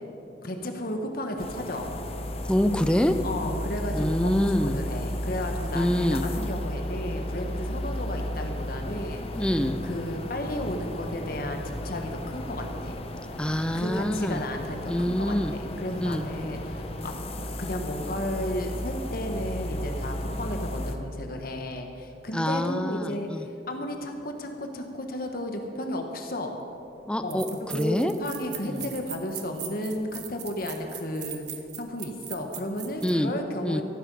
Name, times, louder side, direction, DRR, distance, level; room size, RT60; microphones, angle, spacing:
voice 1, 0.4-1.9 3.2-9.4 9.8-13.0 13.7-17.1 17.6-26.6 27.2-27.4 27.7-31.5 31.8-33.8, left 1 dB, 55° left, 4 dB, 1.2 m, -33 dB
sound 1, 1.4-21.0, left 1 dB, 35° left, 0.9 m, -34 dB
voice 2, 2.5-3.2 3.9-4.8 5.7-6.2 9.3-9.8 13.4-14.4 14.9-15.5 16.0-16.2 22.3-23.5 27.1-28.1 28.7-28.9 33.0-33.3 33.6-33.8, equal, 5° left, 9 dB, 0.5 m, -26 dB
sound 2, 26.7-26.8 27.3-33.2, right 11 dB, 75° right, 1.2 m, -40 dB
14.5 x 12.5 x 5.3 m, 2.8 s
head